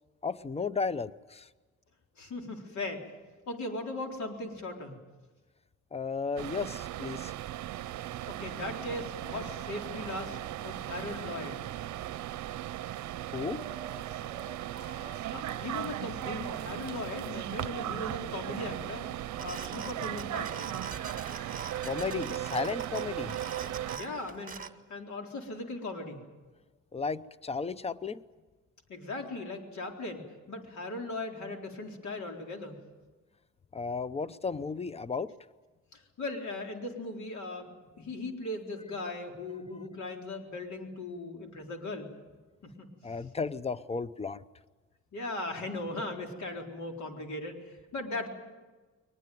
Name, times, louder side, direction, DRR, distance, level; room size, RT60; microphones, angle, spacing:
voice 1, 0.2-1.5 5.9-7.3 13.3-13.7 21.8-23.4 26.9-28.2 33.7-35.3 43.0-44.4, left 5 dB, 20° left, 16 dB, 0.8 m, -34 dB
voice 2, 2.2-3.1 3.5-5.0 8.3-11.6 15.3-19.0 19.4-20.8 23.9-24.5 24.9-26.2 28.9-32.8 35.9-42.1 42.6-42.9 45.1-48.3, left 2 dB, 70° left, 3 dB, 4.0 m, -38 dB
sound 1, 6.4-24.0, right 13 dB, 70° right, 0.7 m, -37 dB
Chicken rooster, 9.7-11.8 12.3-12.4 12.7-16.7 17.3-20.6 21.9-22.0 23.0-23.1 24.0-24.4, right 2 dB, ahead, 7.2 m, -54 dB
sound 2, 19.3-24.7, right 5 dB, 25° right, 1.8 m, -43 dB
22.5 x 20.5 x 9.4 m, 1.3 s
cardioid pair, 90°, 30 cm